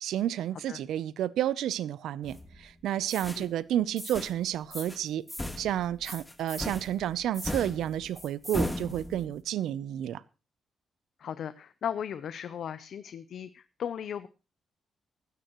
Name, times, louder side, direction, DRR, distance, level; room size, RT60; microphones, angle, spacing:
voice 1, 0.0-5.3 5.6-10.2, right 11 dB, 90° right, 0.6 m, -31 dB
sound 1, 2.2-2.7 3.1-3.4 4.0-4.4 4.7-5.0 5.3-9.4, left 1 dB, 10° left, 1.6 m, -37 dB
voice 2, 11.2-14.3, left 8 dB, 65° left, 0.6 m, -36 dB
16.0 x 13.0 x 3.1 m
cardioid pair, 110°, 0 cm